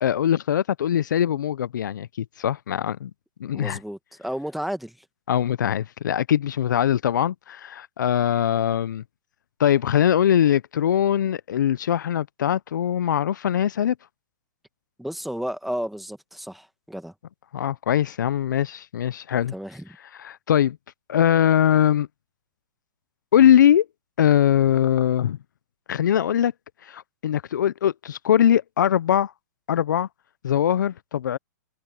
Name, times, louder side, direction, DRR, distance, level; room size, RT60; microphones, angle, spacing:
voice 1, 0.0-3.1 3.4-3.8 5.3-9.0 9.6-13.9 17.5-19.5 20.1-20.8 21.1-22.1 23.3-23.9 24.2-25.4 25.9-26.5 26.8-29.3 29.7-30.1 30.4-31.4, left 10 dB, 75° left, 0.6 m, -21 dB
voice 2, 3.5-5.0 15.0-17.1 19.5-19.9, equal, ahead, 1.5 m, -32 dB
hypercardioid pair, 140°, 10 cm